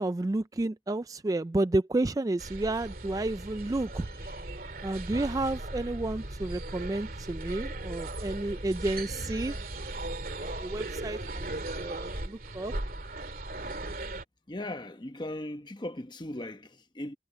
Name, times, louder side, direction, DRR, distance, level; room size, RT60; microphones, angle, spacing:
voice 1, 0.0-4.1 4.8-9.5 10.3-11.5 11.8-12.7, right 2 dB, 20° right, 0.3 m, -31 dB
sound 1, 2.4-14.2, right 2 dB, 50° right, 2.5 m, -37 dB
voice 2, 14.5-17.2, left 1 dB, 25° left, 0.9 m, -38 dB
head